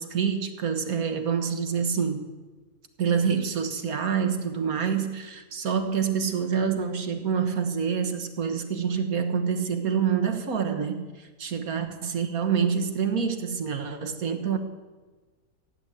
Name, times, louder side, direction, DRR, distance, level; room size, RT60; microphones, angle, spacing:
voice 1, 0.0-2.2 3.0-14.6, right 6 dB, 70° right, 1.7 m, -27 dB
14.5 x 9.8 x 8.2 m
omnidirectional pair, 1.6 m